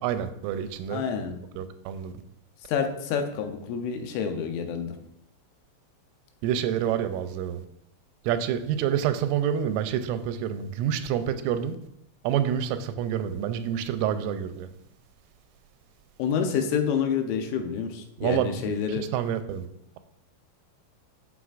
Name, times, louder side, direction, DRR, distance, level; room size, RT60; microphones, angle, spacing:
voice 1, 0.0-1.0 1.6-2.1 6.4-7.6 8.3-11.8 12.2-14.7 18.2-18.5 19.1-19.6, right 9 dB, 90° right, 10 dB, 3.2 m, -27 dB
voice 2, 0.9-1.4 2.7-4.9 16.2-19.1, left 7 dB, 80° left, 5 dB, 3.2 m, -28 dB
14.0 x 5.7 x 2.5 m, 0.79 s
omnidirectional pair, 5.6 m